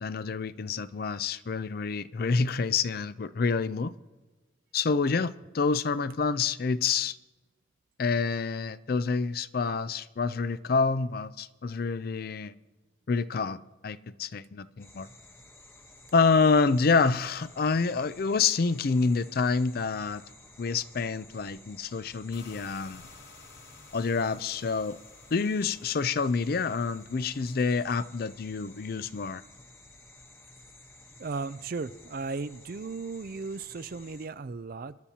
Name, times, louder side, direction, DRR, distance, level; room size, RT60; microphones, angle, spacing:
voice 1, 0.0-3.9 4.7-7.2 8.0-12.5 13.1-15.1 16.1-20.2 20.6-23.0 23.9-25.0 25.3-29.4, left 4 dB, 50° left, 0.4 m, -27 dB
sound 1, 14.8-34.3, left 2 dB, 15° left, 1.0 m, -53 dB
sound 2, 22.3-27.8, left 4 dB, 75° left, 5.9 m, -55 dB
voice 2, 31.2-35.0, right 4 dB, 45° right, 0.4 m, -36 dB
25.0 x 11.5 x 2.8 m
head